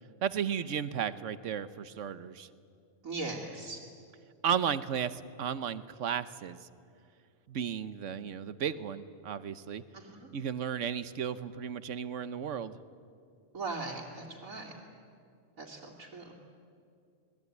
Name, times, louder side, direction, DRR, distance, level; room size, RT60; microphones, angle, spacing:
voice 1, 0.2-2.5 4.4-6.6 7.5-9.8 10.3-12.8, right 8 dB, 65° right, 14 dB, 1.2 m, -34 dB
voice 2, 3.0-3.8 9.9-10.3 13.5-14.7 15.6-16.3, right 3 dB, 85° right, -4 dB, 3.0 m, -39 dB
27.5 x 20.5 x 9.5 m, 2.4 s
omnidirectional pair, 1.4 m